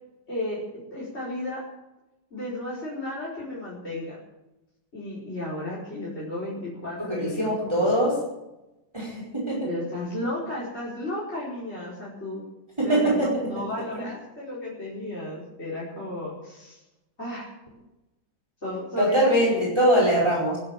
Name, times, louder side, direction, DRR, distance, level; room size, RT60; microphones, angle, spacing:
voice 1, 0.3-0.6 0.9-1.7 2.3-4.2 4.9-7.9 9.6-12.4 12.8-16.8 17.2-17.5 18.6-19.7 20.0-20.3, left 1 dB, 30° left, -6 dB, 5.1 m, -33 dB
voice 2, 7.1-8.1 8.9-9.7 12.8-13.5 19.0-20.6, right 1 dB, 15° right, -4 dB, 4.9 m, -22 dB
20.0 x 9.4 x 7.3 m, 0.95 s
omnidirectional pair, 2.1 m